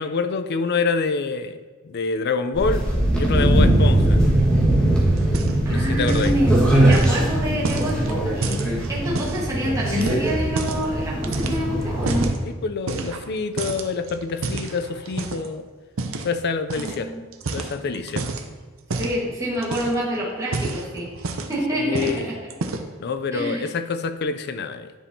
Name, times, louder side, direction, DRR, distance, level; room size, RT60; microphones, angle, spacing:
voice 1, 0.0-1.6 1.8-2.9 3.2-4.2 5.7-6.4 12.5-15.7 16.2-17.1 17.5-18.3 21.7-22.3 23.0-24.9, left 4 dB, 55° left, 10 dB, 0.4 m, -26 dB
sound 1, 2.5-12.3, right 1 dB, 5° left, 1.6 m, -20 dB
sound 2, 5.2-5.8 6.0-6.4 6.9-9.4 9.9-10.9 11.2-12.4 12.9-13.3 13.6-15.5 16.0-16.3 16.7-17.0 17.3-18.5 18.9-19.2 19.6-20.1 20.4-21.6 21.9-22.2 22.5-23.0, right 3 dB, 75° right, 0.6 m, -30 dB
voice 2, 5.6-8.6 8.9-12.3 16.8-17.2 19.0-21.1 21.5-22.5 23.3-23.7, equal, 15° right, -6 dB, 1.5 m, -27 dB
10.0 x 5.2 x 2.8 m, 1.4 s
head